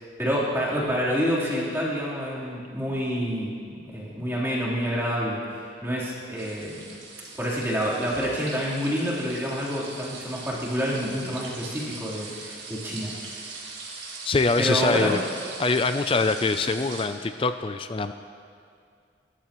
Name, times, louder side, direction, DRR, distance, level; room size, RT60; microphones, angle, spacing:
voice 1, 0.0-3.5 3.8-6.8 7.4-13.5 14.6-15.1, equal, 10° right, -8 dB, 3.6 m, -28 dB
sound 1, 6.3-17.1, right 4 dB, 80° right, 3.9 m, -41 dB
voice 2, 14.2-15.2 15.6-18.1, left 3 dB, 30° left, 9 dB, 0.4 m, -24 dB
29.5 x 14.0 x 3.1 m, 2.3 s
head